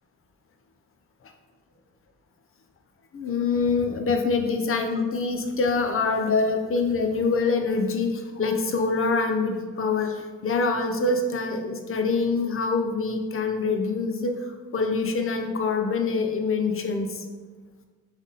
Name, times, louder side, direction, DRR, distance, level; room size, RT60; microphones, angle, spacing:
voice 1, 3.1-17.2, left 4 dB, 45° left, 4 dB, 0.6 m, -25 dB
4.0 x 3.4 x 3.9 m, 1.4 s
cardioid pair, 95°, 32 cm